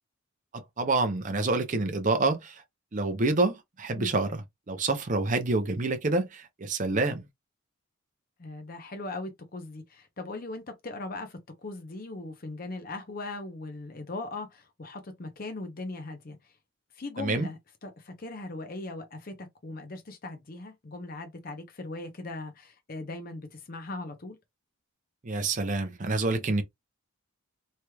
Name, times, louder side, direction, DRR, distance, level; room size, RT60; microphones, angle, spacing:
voice 1, 0.5-2.6 2.9-7.2 17.2-17.5 25.2-26.6, right 3 dB, 35° right, 0.6 m, -27 dB
voice 2, 8.4-16.4 17.0-24.4, left 2 dB, 40° left, 0.6 m, -39 dB
3.2 x 3.0 x 2.2 m
head